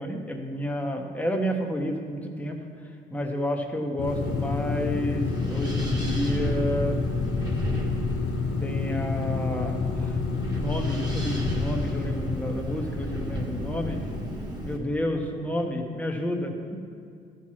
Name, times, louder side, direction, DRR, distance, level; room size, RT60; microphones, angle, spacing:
voice 1, 0.0-7.0 8.6-10.2 10.6-14.0 14.6-16.8, equal, 5° left, 2 dB, 1.2 m, -30 dB
sound 1, 4.0-13.8, left 5 dB, 90° left, 0.7 m, -30 dB
Wind, 4.1-14.8, equal, 20° right, 1.8 m, -32 dB
14.0 x 4.8 x 5.9 m, 2.4 s
cardioid pair, 90°, 20 cm